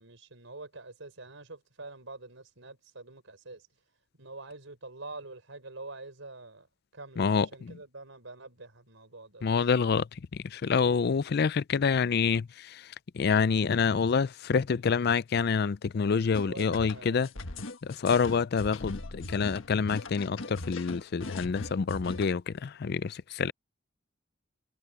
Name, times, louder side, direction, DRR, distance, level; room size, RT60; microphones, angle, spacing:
voice 1, 0.0-3.7 4.2-6.7 6.9-9.5 16.5-17.3, right 2 dB, 75° right, 4.6 m, -46 dB
voice 2, 7.2-7.8 9.4-10.1 10.3-12.9 13.1-17.3 17.8-23.5, left 5 dB, 55° left, 0.4 m, -27 dB
sound 1, 16.3-22.3, left 2 dB, 85° left, 1.5 m, -40 dB
head